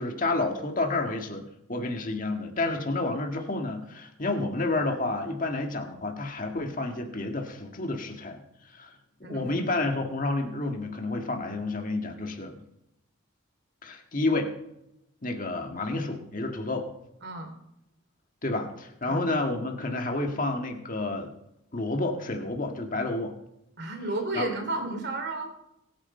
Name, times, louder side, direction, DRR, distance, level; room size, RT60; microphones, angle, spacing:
voice 1, 0.0-1.4 1.7-8.4 8.7-8.9 9.3-12.6 13.8-14.5 15.2-16.9 18.4-21.3 21.7-23.3 24.3-24.5, left 2 dB, 40° left, 3 dB, 1.8 m, -30 dB
voice 2, 9.2-9.7 17.2-17.5 19.1-19.2 23.8-25.5, right 2 dB, 50° right, 4 dB, 3.0 m, -32 dB
23.0 x 9.5 x 4.4 m, 0.84 s
head